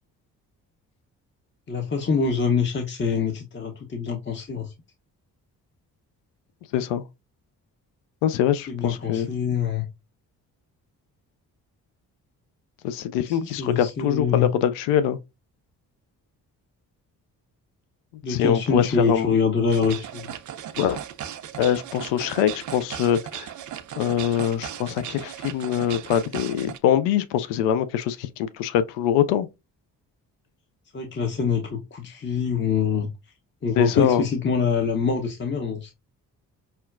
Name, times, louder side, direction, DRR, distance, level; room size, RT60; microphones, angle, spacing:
voice 1, 1.7-4.7 8.7-9.9 13.3-14.5 18.2-20.3 30.9-33.1 33.6-35.9, left 5 dB, 25° left, 0.7 m, -25 dB
voice 2, 6.7-7.1 8.2-9.3 12.8-15.2 18.3-19.3 20.8-21.0 21.6-23.5 24.0-29.5 33.8-34.2, left 10 dB, 65° left, 0.5 m, -23 dB
sound 1, 19.7-26.8, right 10 dB, 40° right, 0.5 m, -37 dB
5.6 x 2.2 x 2.4 m
hypercardioid pair, 40°, 47 cm